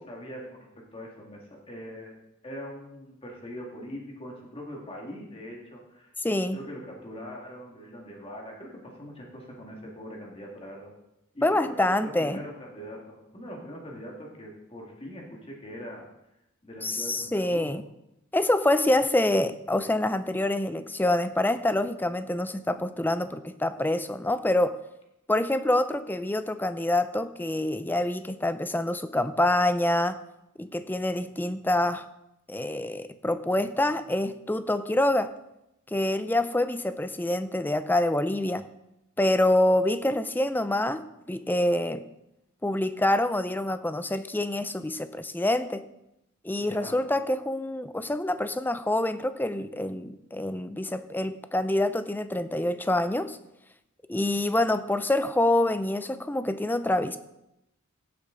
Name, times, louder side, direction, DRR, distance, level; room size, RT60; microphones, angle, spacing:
voice 1, 0.0-2.1 2.4-6.1 6.5-10.9 11.3-16.1 16.6-17.7 46.6-47.0, equal, 25° left, -1 dB, 2.0 m, -42 dB
voice 2, 6.2-6.6 11.4-12.4 16.8-17.8 18.3-24.8 25.3-30.2 30.6-32.1 32.5-35.3 35.9-38.7 39.2-42.0 42.6-45.8 46.4-53.4 54.1-57.2, left 1 dB, 10° left, 11 dB, 0.5 m, -26 dB
16.5 x 8.0 x 3.9 m, 0.87 s
head